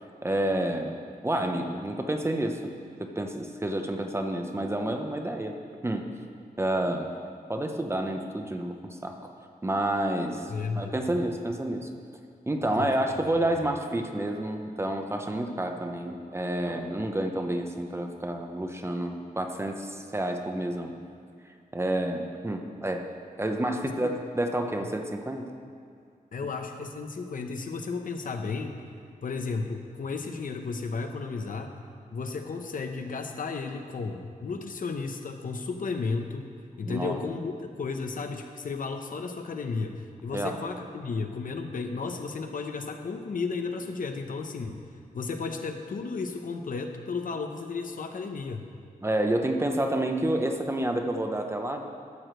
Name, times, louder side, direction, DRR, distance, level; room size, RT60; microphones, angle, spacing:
voice 1, 0.2-1.0 1.2-2.7 3.0-5.6 5.8-6.1 6.6-7.1 7.5-9.2 9.6-11.9 12.5-20.9 21.7-23.1 23.4-25.4 36.8-37.2 40.3-40.6 49.0-51.8, right 1 dB, 15° right, 4 dB, 0.7 m, -29 dB
voice 2, 10.5-10.9 12.8-12.9 23.8-24.1 26.3-28.8 29.2-31.8 32.1-36.5 36.8-44.8 45.1-48.7, left 4 dB, 65° left, 5 dB, 0.8 m, -33 dB
12.5 x 4.9 x 7.6 m, 2.3 s
wide cardioid pair, 145°, 15 cm